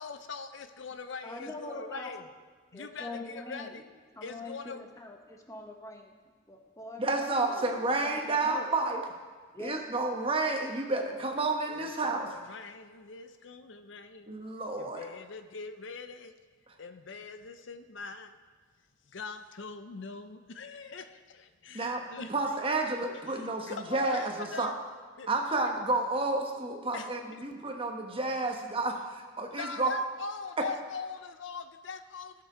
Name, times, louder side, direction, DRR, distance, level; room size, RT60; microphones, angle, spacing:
voice 1, 0.0-2.2 2.7-3.8 4.2-4.8 11.7-14.4 14.8-16.3 16.8-18.3 19.1-22.3 23.1-24.8 25.2-25.3 26.9-27.1 29.5-32.4, left 4 dB, 70° left, 9 dB, 0.7 m, -42 dB
voice 2, 1.2-2.1 2.7-3.7 4.2-6.1 6.5-8.7 9.5-9.8, left 2 dB, 15° left, 3 dB, 1.2 m, -43 dB
voice 3, 7.0-9.0 9.6-12.3 14.3-15.0 21.7-22.0 22.3-24.7 25.3-28.9 29.4-29.9, right 3 dB, 30° right, 2 dB, 1.2 m, -30 dB
17.0 x 6.8 x 5.0 m, 1.5 s
head